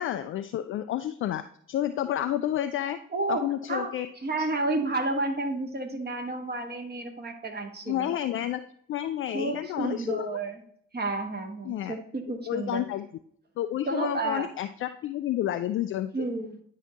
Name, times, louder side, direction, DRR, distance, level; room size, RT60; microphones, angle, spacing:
voice 1, 0.0-1.4 1.7-3.0 3.3-4.1 4.4-4.5 7.9-8.6 8.9-10.4 11.6-11.9 12.5-13.0 13.6-16.3, left 12 dB, 35° left, 9 dB, 0.4 m, -30 dB
voice 2, 3.1-3.4 3.7-3.9 4.2-8.1 9.3-10.6 10.9-12.8 13.9-14.5 16.1-16.5, right 2 dB, 25° right, 4 dB, 1.4 m, -31 dB
9.7 x 5.0 x 2.8 m, 0.64 s
figure-of-eight pair, 45°, 35 cm